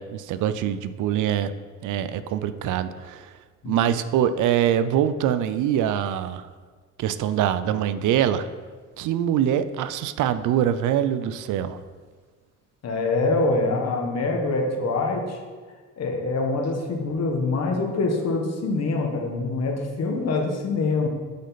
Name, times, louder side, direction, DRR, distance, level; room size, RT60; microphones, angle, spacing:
voice 1, 0.0-1.5 1.8-3.3 3.7-6.5 7.0-8.5 9.0-11.8, right 10 dB, 80° right, 12 dB, 0.5 m, -24 dB
voice 2, 3.6-3.9 12.8-15.4 16.0-21.1, left 3 dB, 55° left, 1 dB, 1.4 m, -25 dB
7.9 x 5.2 x 4.1 m, 1.5 s
cardioid pair, 90°, 30 cm